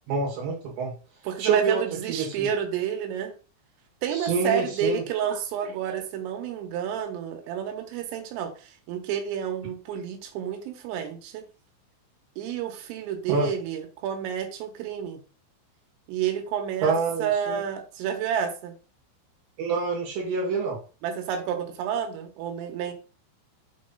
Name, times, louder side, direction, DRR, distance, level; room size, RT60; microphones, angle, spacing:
voice 1, 0.1-0.9 1.4-1.8 2.1-2.5 4.1-5.0 13.3-13.5 16.8-17.6 19.6-20.8, right 5 dB, 65° right, -3 dB, 3.8 m, -26 dB
voice 2, 1.2-3.3 4.0-11.4 12.4-15.2 16.1-18.8 21.0-22.9, right 8 dB, 85° right, 5 dB, 3.8 m, -30 dB
7.6 x 3.2 x 5.4 m, 0.36 s
omnidirectional pair, 5.8 m